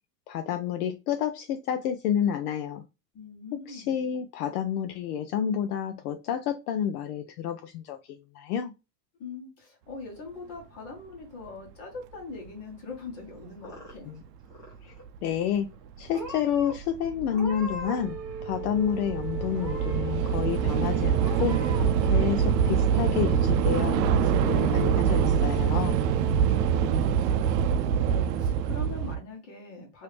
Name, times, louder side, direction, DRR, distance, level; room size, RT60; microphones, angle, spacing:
voice 1, 0.3-2.8 3.7-8.7 14.0-14.2 14.8-14.9 15.2-15.7 16.0-18.1 18.4-21.6 22.1-26.0, left 9 dB, 65° left, 0.6 m, -29 dB
voice 2, 3.1-4.0 9.2-14.1 26.6-30.0, left 3 dB, 30° left, 1.3 m, -42 dB
Purr / Meow, 13.3-14.2 14.5-15.1 15.7-16.7 17.3-18.1 18.4-19.1 19.5-20.1 20.6-20.7 21.2-21.9, equal, 5° left, 0.6 m, -40 dB
Train / Subway metro underground, 15.2-15.3 16.1-16.3 16.6-29.2, right 8 dB, 80° right, 0.6 m, -25 dB
Wind instrument woodwind instrument, 17.8-27.0, right 6 dB, 20° right, 0.9 m, -39 dB
3.1 x 2.8 x 3.2 m
supercardioid pair, 170°, 49 cm